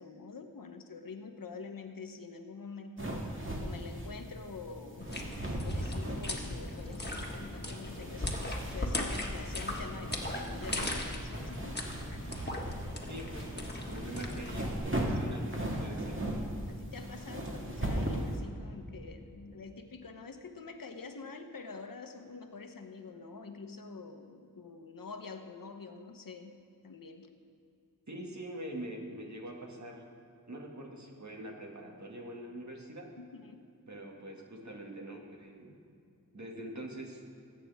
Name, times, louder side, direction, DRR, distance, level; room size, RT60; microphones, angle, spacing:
voice 1, 0.0-5.2 5.6-11.8 16.7-27.3 33.2-33.7, left 4 dB, 80° left, 7 dB, 0.9 m, -46 dB
sound 1, 3.0-18.4, right 1 dB, 40° right, 2.0 m, -38 dB
sound 2, 5.0-14.8, left 1 dB, 30° left, 1.5 m, -38 dB
voice 2, 13.1-16.4 28.1-30.0 30.5-33.1 33.9-35.8 36.3-37.2, right 1 dB, 55° right, 0 dB, 2.1 m, -44 dB
21.0 x 8.6 x 3.5 m, 2.4 s
wide cardioid pair, 65°, 33 cm